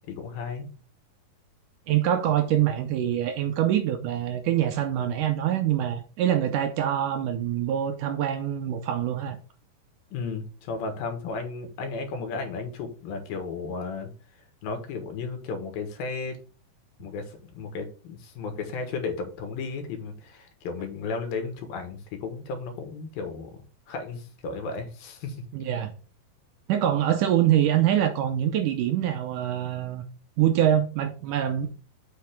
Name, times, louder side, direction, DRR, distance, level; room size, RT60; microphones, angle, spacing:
voice 1, 0.1-0.7 10.1-14.1 14.6-16.4 17.0-23.6 23.9-25.4, left 4 dB, 75° left, 3.3 m, -34 dB
voice 2, 1.9-9.4 25.5-25.9 26.7-30.0 30.4-31.7, right 11 dB, 75° right, 2.0 m, -24 dB
7.5 x 5.9 x 3.5 m
omnidirectional pair, 4.3 m